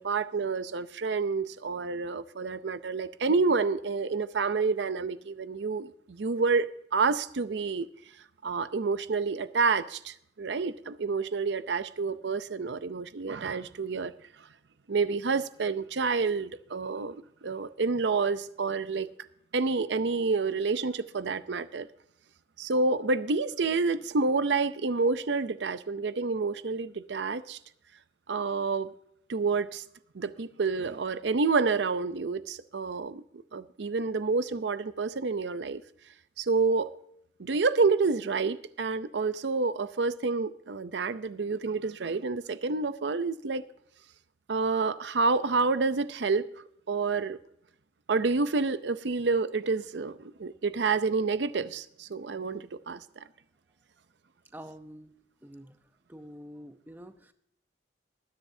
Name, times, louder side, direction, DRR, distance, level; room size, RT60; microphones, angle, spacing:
voice 1, 0.0-7.9 8.4-14.1 14.9-19.1 19.5-21.9 22.6-27.6 28.3-28.9 29.3-29.8 30.1-33.2 33.5-35.8 36.4-36.9 37.4-43.6 44.5-46.5 46.9-47.4 48.1-53.0, right 4 dB, 75° right, 0.6 m, -28 dB
voice 2, 54.5-55.1 55.4-55.8 56.1-57.3, equal, 10° right, 0.8 m, -46 dB
20.5 x 10.0 x 2.7 m
head